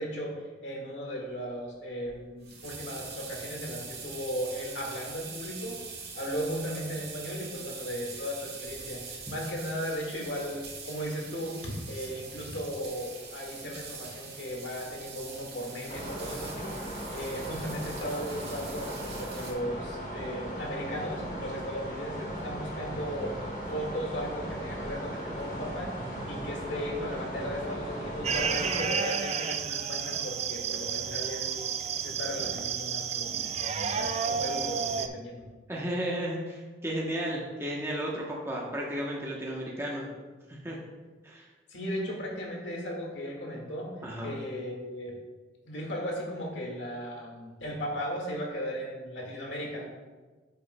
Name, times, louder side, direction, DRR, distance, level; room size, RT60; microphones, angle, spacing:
voice 1, 0.0-5.8 6.2-16.9 17.1-23.4 23.7-25.9 26.3-35.4 41.7-45.2 45.6-49.8, equal, 80° left, -1 dB, 1.8 m, -36 dB
sound 1, 2.1-19.5, right 5 dB, 60° right, 1.8 m, -43 dB
sound 2, 15.9-28.8, right 1 dB, 45° left, 1.7 m, -37 dB
sound 3, 28.2-35.1, right 7 dB, 35° right, 0.3 m, -31 dB
voice 2, 35.7-40.0 40.5-40.8 41.2-41.5 44.0-44.3, equal, 15° right, -3 dB, 0.9 m, -33 dB
10.5 x 6.8 x 2.2 m, 1.3 s
head